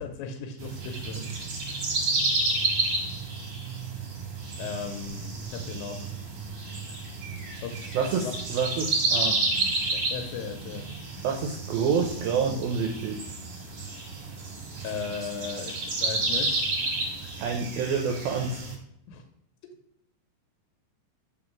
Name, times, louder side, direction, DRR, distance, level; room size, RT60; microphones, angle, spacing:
voice 1, 0.0-1.3 1.8-2.0 4.6-6.1 7.6-8.0 8.2-8.3 9.9-10.8 14.8-16.7 19.1-19.2, left 5 dB, 85° left, 5 dB, 3.0 m, -37 dB
sound 1, 0.6-18.7, right 3 dB, 65° right, 1.3 m, -31 dB
voice 2, 7.9-9.4 11.2-13.3 17.4-18.7, right 6 dB, 85° right, 3 dB, 2.1 m, -28 dB
7.0 x 3.7 x 6.0 m, 0.77 s
omnidirectional pair, 5.2 m